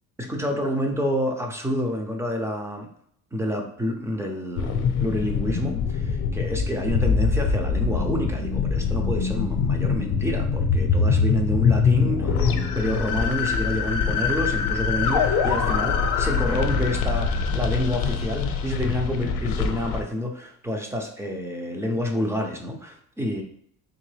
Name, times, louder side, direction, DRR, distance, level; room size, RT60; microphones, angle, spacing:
voice 1, 0.2-2.9 3.3-23.4, left 1 dB, 10° right, 3 dB, 0.4 m, -28 dB
sound 1, 4.6-20.0, left 5 dB, 70° left, 0.6 m, -24 dB
3.7 x 2.9 x 3.2 m, 0.65 s
cardioid pair, 160°, 36 cm